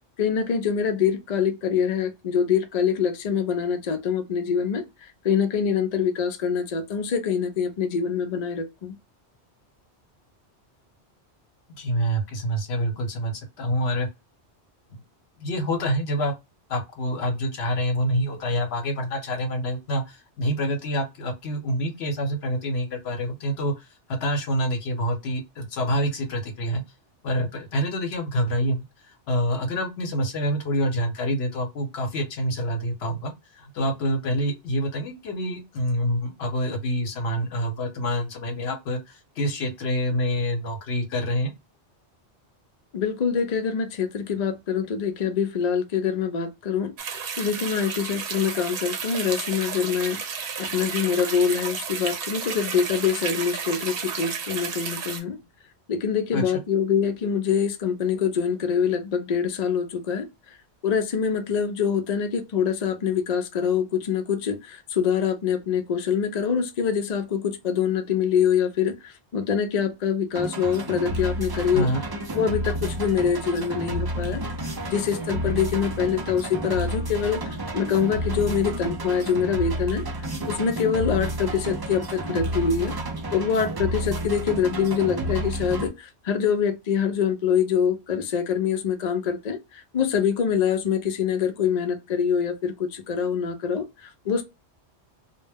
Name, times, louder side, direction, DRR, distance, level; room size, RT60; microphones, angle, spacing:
voice 1, 0.2-4.8 5.2-9.0 42.9-46.9 47.4-55.4 55.9-60.3 60.8-71.9 72.3-74.4 74.9-83.0 83.3-94.4, left 7 dB, 55° left, 0.5 m, -25 dB
voice 2, 11.8-14.1 15.4-16.3 16.7-23.7 24.1-26.8 27.2-28.9 29.3-33.3 33.7-39.0 39.4-41.5 56.3-56.4 71.7-72.0, equal, 70° left, 1.0 m, -26 dB
sound 1, 47.0-55.2, right 6 dB, 65° right, 0.8 m, -32 dB
sound 2, 70.3-85.9, right 1 dB, 35° right, 0.3 m, -30 dB
2.2 x 2.1 x 3.3 m
omnidirectional pair, 1.1 m